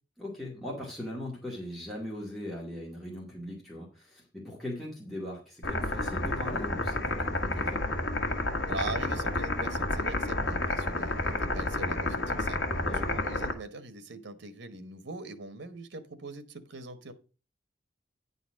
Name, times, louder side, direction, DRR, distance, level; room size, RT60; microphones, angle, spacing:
voice 1, 0.2-7.8 12.8-13.1, left 1 dB, ahead, -5 dB, 2.1 m, -40 dB
sound 1, 5.6-13.5, left 2 dB, 85° left, 1.5 m, -30 dB
voice 2, 8.7-12.6 12.9-17.1, right 3 dB, 75° right, 11 dB, 1.1 m, -41 dB
9.7 x 4.0 x 6.2 m, 0.34 s
head